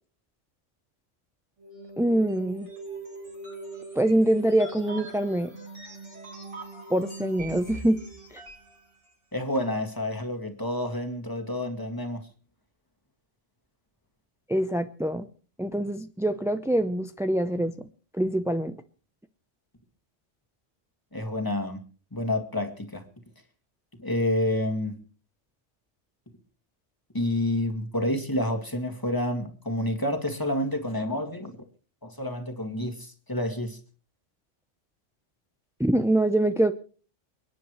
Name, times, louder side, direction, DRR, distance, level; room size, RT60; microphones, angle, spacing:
sound 1, 1.6-8.7, right 3 dB, 70° right, 4.3 m, -41 dB
voice 1, 2.0-2.7 3.9-5.5 6.9-8.0 8.3-8.4 14.5-15.3 15.6-17.9 18.1-18.8 35.8-36.7, right 1 dB, 5° right, 9 dB, 0.4 m, -24 dB
voice 2, 9.3-12.3 21.1-21.8 22.1-23.0 24.0-25.0 27.1-31.6 32.0-33.8, left 1 dB, 15° left, 3 dB, 2.0 m, -29 dB
29.5 x 10.0 x 3.2 m, 0.40 s
omnidirectional pair, 1.3 m